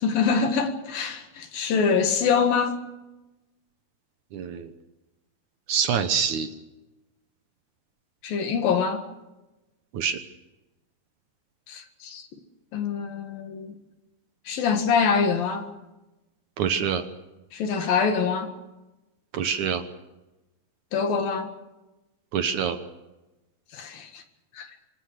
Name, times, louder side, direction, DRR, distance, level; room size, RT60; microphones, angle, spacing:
voice 1, 0.0-2.8 8.2-9.0 11.7-12.3 12.7-13.8 14.5-15.7 17.5-18.5 20.9-21.5 23.7-24.2 24.5-24.7, left 6 dB, 70° left, 3.4 m, -25 dB
voice 2, 4.3-4.7 5.7-6.5 9.9-10.2 16.6-17.0 19.3-19.8 22.3-22.8, right 7 dB, 65° right, 2.2 m, -25 dB
26.0 x 21.5 x 6.7 m
omnidirectional pair, 4.5 m